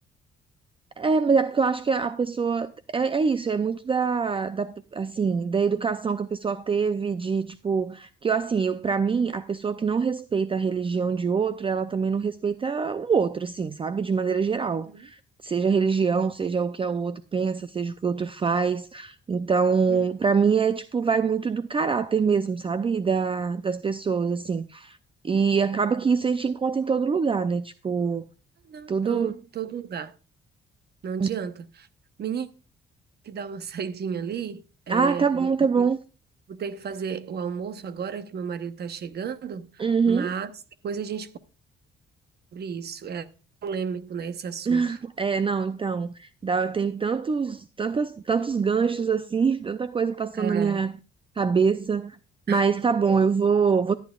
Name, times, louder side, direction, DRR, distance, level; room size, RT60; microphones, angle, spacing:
voice 1, 1.0-25.0 25.2-28.2 28.9-29.3 31.2-31.3 34.9-36.0 39.8-40.3 44.7-50.9 51.4-52.2 52.5-53.9, right 5 dB, 25° right, 0.5 m, -24 dB
voice 2, 28.7-30.1 31.0-31.9 32.2-32.5 33.2-35.5 35.8-35.9 36.5-40.5 40.8-41.3 42.5-43.3 43.6-45.0 50.3-50.8 52.5-52.6, right 6 dB, 55° right, 1.0 m, -33 dB
14.0 x 9.3 x 2.4 m
cardioid pair, 90°, 20 cm